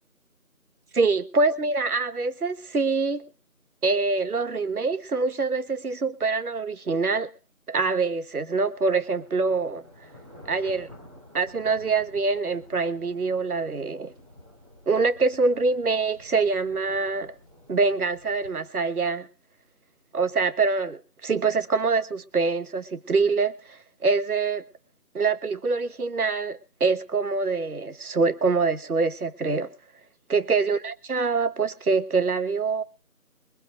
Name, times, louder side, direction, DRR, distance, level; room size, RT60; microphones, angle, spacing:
voice 1, 0.9-3.2 3.8-7.3 7.7-9.8 10.5-10.9 11.3-14.1 14.9-17.3 17.7-19.3 20.1-23.8 24.0-24.6 25.1-29.7 30.3-32.8, right 4 dB, 75° right, 1.1 m, -25 dB
sound 1, 8.3-18.6, left 1 dB, 20° right, 3.5 m, -51 dB
23.0 x 13.0 x 2.5 m
figure-of-eight pair, 175°, 45 cm